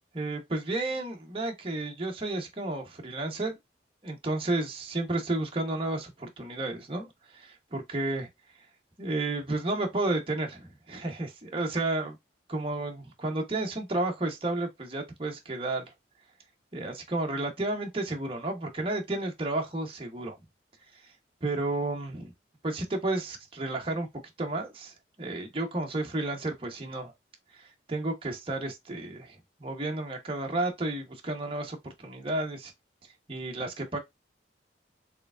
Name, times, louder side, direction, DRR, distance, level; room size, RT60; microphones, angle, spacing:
voice 1, 0.1-3.5 4.0-8.3 9.0-12.2 12.5-15.8 16.7-20.4 21.4-22.3 22.6-24.1 24.4-27.1 27.5-32.7 33.3-34.0, right 2 dB, 30° right, 0.9 m, -32 dB
4.7 x 3.3 x 2.4 m
head